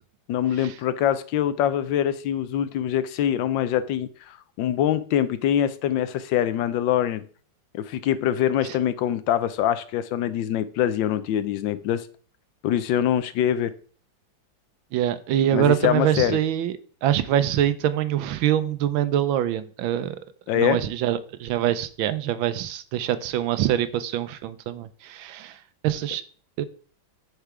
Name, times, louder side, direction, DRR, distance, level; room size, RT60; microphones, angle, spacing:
voice 1, 0.3-7.2 7.7-12.1 12.6-13.7 15.5-16.4 20.5-20.8, left 10 dB, 75° left, 13 dB, 1.3 m, -24 dB
voice 2, 14.9-16.7 17.0-20.2 20.5-25.5 25.8-26.2 26.6-26.7, right 11 dB, 85° right, 13 dB, 1.5 m, -24 dB
9.2 x 4.8 x 4.8 m, 0.43 s
omnidirectional pair, 2.1 m